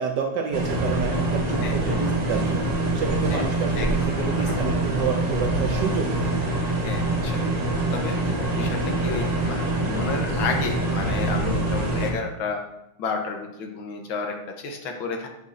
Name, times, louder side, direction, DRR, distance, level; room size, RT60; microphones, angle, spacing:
voice 1, 0.0-2.6 2.9-6.3, right 6 dB, 70° right, 3 dB, 1.1 m, -29 dB
sound 1, 0.5-12.1, right 2 dB, 30° right, 0.7 m, -25 dB
voice 2, 1.6-2.0 3.3-3.4 3.8-4.6 6.8-7.4 7.9-12.6 13.0-15.3, left 4 dB, 70° left, 3 dB, 1.7 m, -32 dB
9.4 x 6.0 x 2.6 m, 0.87 s
omnidirectional pair, 2.3 m